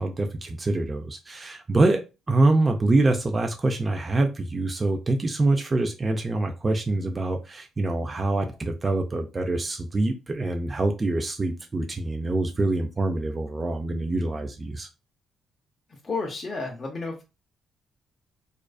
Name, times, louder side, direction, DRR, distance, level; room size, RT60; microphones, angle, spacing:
voice 1, 0.0-14.9, right 2 dB, 25° right, 0.3 m, -25 dB
voice 2, 16.0-17.2, left 3 dB, 35° left, 0.5 m, -31 dB
2.4 x 2.3 x 2.2 m
cardioid pair, 90°, 0 cm